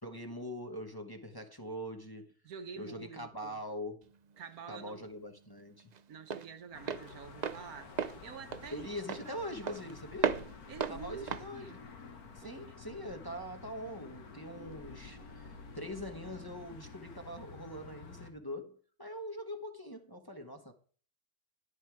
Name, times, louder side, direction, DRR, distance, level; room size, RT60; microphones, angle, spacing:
voice 1, 0.0-2.3 2.8-4.1 4.7-5.9 8.7-10.4 10.9-11.9 12.3-20.7, equal, 15° left, 1.2 m, -43 dB
voice 2, 2.4-3.6 4.4-5.1 6.1-9.0 9.5-9.8 10.7-11.8 12.4-12.8, right 6 dB, 80° right, 1.5 m, -48 dB
Walk footsteps, 4.0-12.7, right 7 dB, 50° right, 0.5 m, -38 dB
sound 1, 6.7-18.3, left 4 dB, 85° left, 2.0 m, -50 dB
10.5 x 10.5 x 4.7 m
omnidirectional pair, 1.5 m